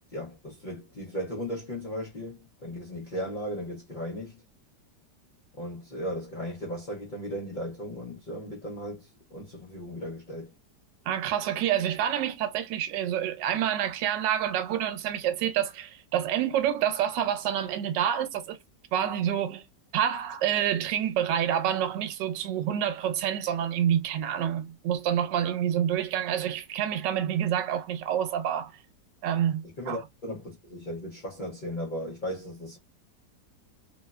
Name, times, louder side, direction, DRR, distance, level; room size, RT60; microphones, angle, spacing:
voice 1, 0.1-4.4 5.6-10.5 29.6-32.8, equal, 65° left, 0.4 m, -36 dB
voice 2, 11.1-18.6 18.9-19.6 19.9-28.7 29.2-30.0, right 10 dB, 85° right, 1.2 m, -28 dB
3.1 x 2.1 x 2.2 m
omnidirectional pair, 1.9 m